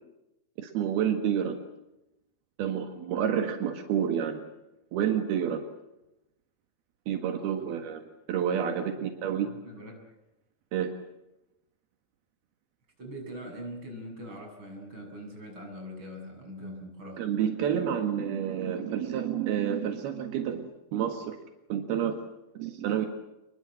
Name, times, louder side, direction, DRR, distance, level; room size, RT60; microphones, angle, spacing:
voice 1, 0.6-1.6 2.6-4.4 4.9-5.6 7.1-8.0 8.3-9.5 10.7-10.9 17.2-21.4 21.7-22.2 22.6-23.1, right 9 dB, 80° right, 6 dB, 3.7 m, -29 dB
voice 2, 7.3-7.9 9.0-10.1 13.0-17.2, equal, 30° right, 2 dB, 7.8 m, -43 dB
28.0 x 22.0 x 7.7 m, 0.91 s
omnidirectional pair, 4.4 m